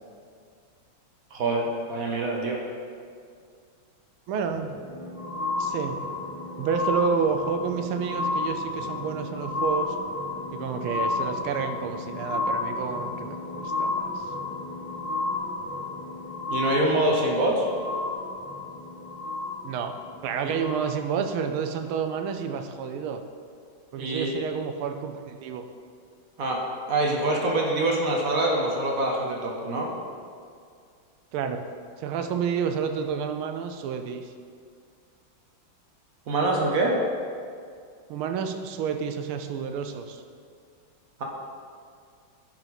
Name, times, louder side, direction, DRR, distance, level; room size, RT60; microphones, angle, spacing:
voice 1, 1.3-2.6 16.5-17.7 20.4-20.5 24.0-24.3 26.4-26.6 26.9-29.9 36.3-37.0, right 2 dB, 55° right, -1 dB, 1.0 m, -25 dB
voice 2, 4.3-4.7 5.6-6.0 6.6-9.9 10.5-14.2 19.6-19.9 20.2-23.2 23.9-25.6 31.3-31.6 32.0-34.3 38.1-40.2, right 6 dB, 90° right, 7 dB, 1.5 m, -29 dB
sound 1, 4.5-21.3 22.0-22.1, left 3 dB, 10° left, 0.8 m, -32 dB
10.5 x 4.4 x 4.0 m, 2.2 s
omnidirectional pair, 2.3 m